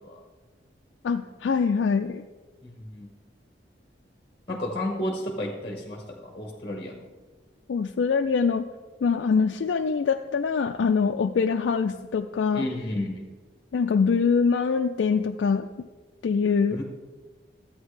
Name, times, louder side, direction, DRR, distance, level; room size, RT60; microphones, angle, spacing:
voice 1, 1.0-2.2 7.7-8.7 9.0-12.6 13.7-15.7 16.2-16.8, left 5 dB, 80° left, 6 dB, 0.4 m, -24 dB
voice 2, 2.6-3.1 4.5-7.0 12.5-13.2 16.7-16.8, left 1 dB, 30° left, 1 dB, 1.1 m, -32 dB
13.5 x 8.8 x 3.2 m, 1.3 s
head